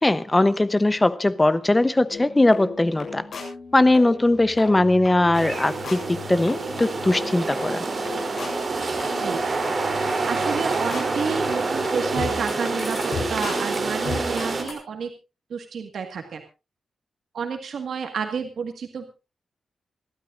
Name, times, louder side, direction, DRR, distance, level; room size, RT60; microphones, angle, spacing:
voice 1, 0.0-3.3 3.7-7.8, left 2 dB, 15° left, 0.9 m, -20 dB
sound 1, 2.1-14.7, left 4 dB, 70° left, 7.3 m, -36 dB
sound 2, 5.3-14.6, right 3 dB, 40° right, 3.6 m, -27 dB
voice 2, 10.3-15.1 15.5-16.4 17.3-19.1, right 6 dB, 80° right, 1.8 m, -30 dB
27.0 x 12.5 x 2.6 m
wide cardioid pair, 120°, 0 cm